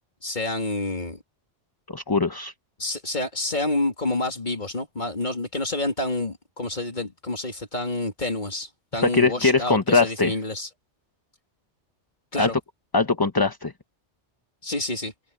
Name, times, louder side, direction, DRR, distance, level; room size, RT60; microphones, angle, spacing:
voice 1, 0.2-1.2 2.8-10.7 12.3-12.6 14.6-15.1, left 2 dB, 40° left, 3.2 m, -28 dB
voice 2, 1.9-2.5 9.1-10.3 12.4-12.5 12.9-13.7, left 4 dB, 20° left, 0.9 m, -21 dB
omnidirectional pair, 1.2 m